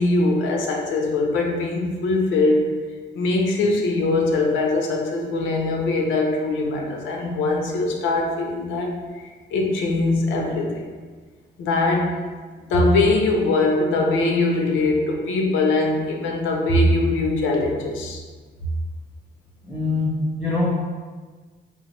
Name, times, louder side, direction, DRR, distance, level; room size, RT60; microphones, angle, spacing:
voice 1, 0.0-2.7 3.1-9.2 9.5-10.9 11.6-12.1 12.7-18.2, left 2 dB, 85° left, 1 dB, 0.5 m, -21 dB
voice 2, 19.7-20.7, left 3 dB, ahead, -6 dB, 0.6 m, -23 dB
2.8 x 2.0 x 2.9 m, 1.4 s
cardioid pair, 90°, 20 cm